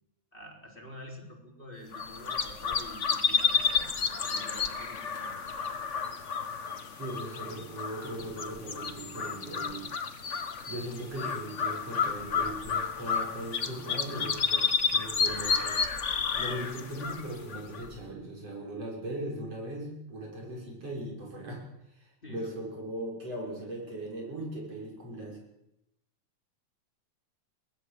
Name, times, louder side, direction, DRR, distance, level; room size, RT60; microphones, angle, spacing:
voice 1, 0.3-5.3 22.2-22.6, left 1 dB, 15° left, 1 dB, 4.0 m, -47 dB
sound 1, 1.9-18.0, left 5 dB, 80° left, 0.6 m, -31 dB
voice 2, 7.0-15.8 16.3-21.6 21.9-25.4, right 1 dB, 50° right, -1 dB, 7.1 m, -39 dB
22.5 x 18.0 x 7.6 m, 0.85 s
omnidirectional pair, 3.5 m